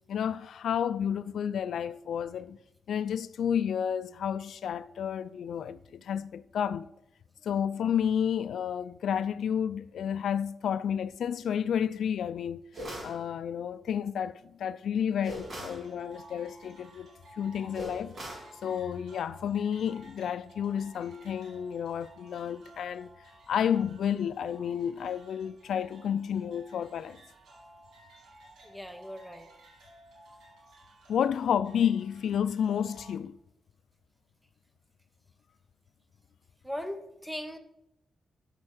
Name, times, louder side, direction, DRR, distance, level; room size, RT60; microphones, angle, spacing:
voice 1, 0.1-2.6 2.9-6.9 7.4-12.6 13.0-18.1 18.6-23.1 23.5-27.2 31.1-33.4, left 8 dB, 80° left, 0.3 m, -31 dB
sound 1, 12.7-13.2 15.2-15.8 17.7-18.5, equal, 35° right, 2.7 m, -40 dB
sound 2, 15.3-33.1, right 1 dB, 80° right, 2.9 m, -55 dB
voice 2, 28.6-29.5 36.6-37.6, equal, ahead, 0.9 m, -39 dB
12.0 x 4.4 x 6.4 m
wide cardioid pair, 180°, 0 cm